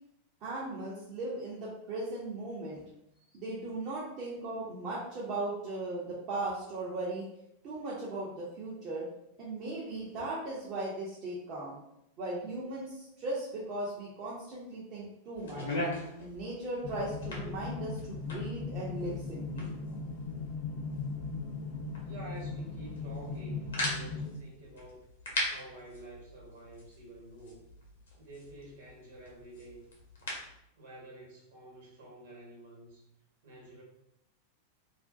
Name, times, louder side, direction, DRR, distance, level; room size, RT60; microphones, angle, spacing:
voice 1, 0.4-2.8 3.3-7.3 7.6-9.0 9.4-11.8 12.2-15.6 16.2-19.7, right 2 dB, 40° right, -6 dB, 0.5 m, -38 dB
sound 1, 15.3-30.6, left 1 dB, 65° left, 0.7 m, -41 dB
sound 2, 16.8-24.3, left 4 dB, 35° left, 0.4 m, -38 dB
voice 2, 22.0-25.0 25.5-27.6 28.2-29.8 30.7-33.0 33.4-33.8, right 2 dB, 60° right, -3 dB, 1.1 m, -49 dB
2.4 x 2.1 x 2.4 m, 0.81 s
figure-of-eight pair, 90°, 0 cm